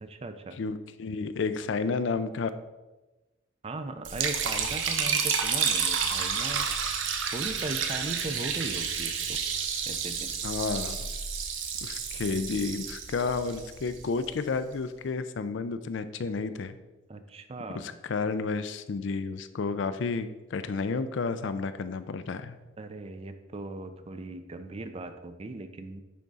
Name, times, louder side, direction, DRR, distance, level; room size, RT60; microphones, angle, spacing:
voice 1, 0.0-0.6 3.6-6.7 7.3-9.4 9.9-10.3 17.1-17.9 22.8-26.0, right 2 dB, 30° right, 9 dB, 0.4 m, -38 dB
voice 2, 0.6-2.5 10.4-11.0 11.8-16.7 17.7-22.6, left 4 dB, 60° left, 12 dB, 0.4 m, -31 dB
Liquid, 4.0-14.2, right 6 dB, 70° right, 0.8 m, -30 dB
10.0 x 3.6 x 3.9 m, 1.1 s
head